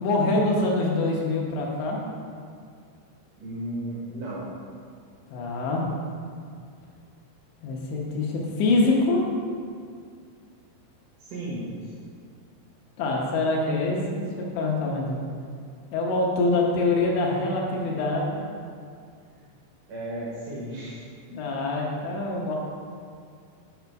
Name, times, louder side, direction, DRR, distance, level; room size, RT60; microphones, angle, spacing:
voice 1, 0.0-2.0 5.3-5.8 7.6-9.2 13.0-15.2 15.9-18.4 21.3-22.6, left 2 dB, 75° left, -2 dB, 3.3 m, -25 dB
voice 2, 3.3-4.4 11.2-11.9 19.3-19.4 19.9-21.0, right 1 dB, 85° right, -6 dB, 1.5 m, -34 dB
8.6 x 5.6 x 4.7 m, 2.2 s
omnidirectional pair, 5.3 m